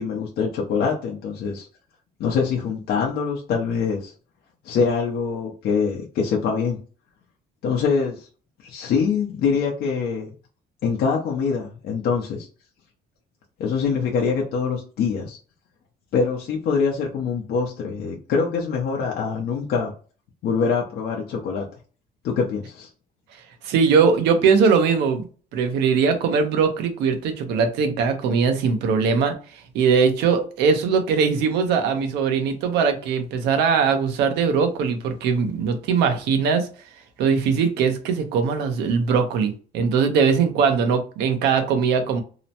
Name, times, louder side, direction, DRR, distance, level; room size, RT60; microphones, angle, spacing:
voice 1, 0.0-1.7 2.2-4.1 4.6-6.8 7.6-8.3 8.6-10.3 10.8-12.5 13.6-15.4 16.1-19.9 20.4-21.6 22.2-22.9, left 5 dB, 65° left, -1 dB, 0.6 m, -24 dB
voice 2, 23.6-25.2 25.5-36.7 37.2-42.2, right 5 dB, 85° right, 6 dB, 0.7 m, -21 dB
2.8 x 2.1 x 2.7 m, 0.38 s
cardioid pair, 110°, 17 cm